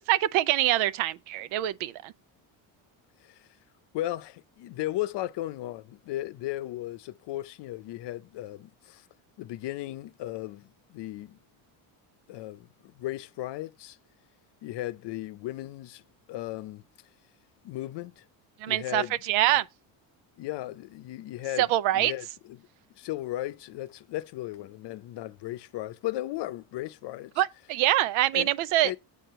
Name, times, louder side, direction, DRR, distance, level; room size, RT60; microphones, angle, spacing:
voice 1, 0.1-2.1 18.6-19.6 21.6-22.1 27.4-28.9, right 14 dB, 85° right, 0.8 m, -25 dB
voice 2, 3.9-9.0 9.4-11.4 12.3-14.0 14.6-16.0 16.3-16.8 17.6-18.2 18.7-19.1 20.4-22.7 23.0-27.3 28.3-28.5 28.8-29.0, left 15 dB, 60° left, 0.7 m, -36 dB
8.4 x 4.6 x 6.7 m
cardioid pair, 120°, 48 cm